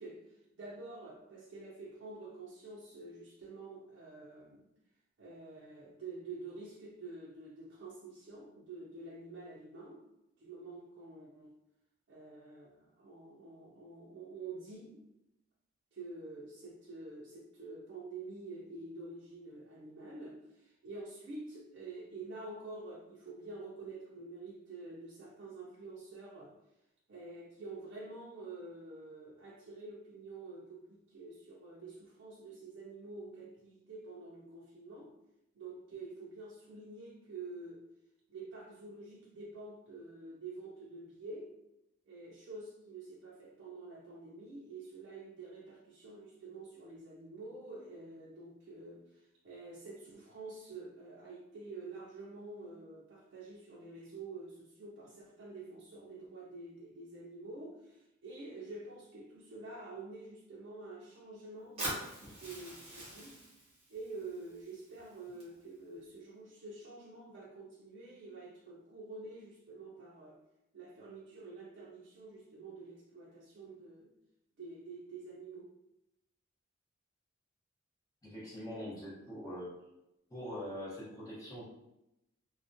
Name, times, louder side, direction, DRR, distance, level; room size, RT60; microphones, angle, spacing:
voice 1, 0.0-4.7 5.2-10.0 10.4-11.5 12.1-15.1 15.9-26.5 27.1-35.1 35.6-37.8 38.3-41.5 42.0-63.4 63.9-70.4 70.7-74.1 74.6-75.7, right 3 dB, 55° right, -5 dB, 0.4 m, -48 dB
Fire, 61.8-65.8, right 1 dB, 30° right, 0.8 m, -44 dB
voice 2, 78.2-79.7 80.3-81.6, equal, 15° left, -9 dB, 0.8 m, -43 dB
2.3 x 2.1 x 2.5 m, 0.88 s
head